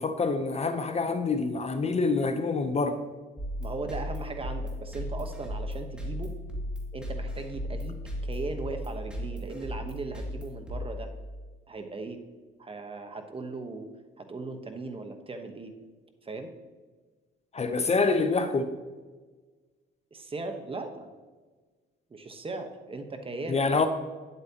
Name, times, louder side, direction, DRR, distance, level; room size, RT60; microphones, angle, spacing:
voice 1, 0.0-3.0 17.5-18.7 23.5-23.9, left 4 dB, 30° left, 9 dB, 0.6 m, -26 dB
sound 1, 3.4-11.5, equal, 5° right, 2.2 m, -36 dB
voice 2, 3.6-6.3 6.9-8.0 8.2-11.1 11.7-12.2 12.6-13.9 14.2-15.7 16.2-16.5 20.1-21.1 22.1-23.8, right 3 dB, 30° right, 6 dB, 1.0 m, -38 dB
9.5 x 8.1 x 2.8 m, 1.3 s
cardioid pair, 90°, 20 cm